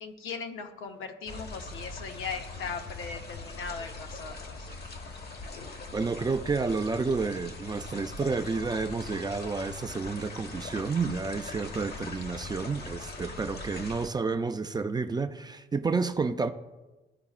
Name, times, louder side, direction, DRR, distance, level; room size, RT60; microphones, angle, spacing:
voice 1, 0.0-4.7, left 5 dB, 85° left, 0.8 m, -39 dB
sound 1, 1.3-14.1, left 3 dB, 55° left, 1.1 m, -41 dB
voice 2, 5.9-16.5, right 4 dB, 20° right, 0.4 m, -30 dB
13.5 x 4.8 x 2.4 m
cardioid pair, 90°, 20 cm